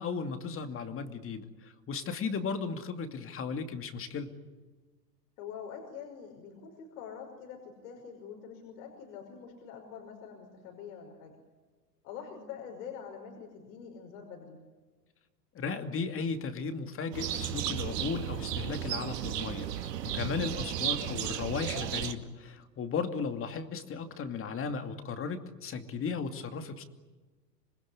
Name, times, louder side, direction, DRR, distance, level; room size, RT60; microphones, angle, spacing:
voice 1, 0.0-4.3 15.5-26.8, left 5 dB, 25° left, 8 dB, 2.5 m, -36 dB
voice 2, 5.4-11.4 12.0-14.6 20.5-20.9, left 7 dB, 60° left, 2 dB, 5.7 m, -45 dB
sound 1, 17.1-22.1, right 11 dB, 70° right, 2.4 m, -34 dB
27.0 x 20.5 x 9.9 m, 1.3 s
hypercardioid pair, 110°, 49 cm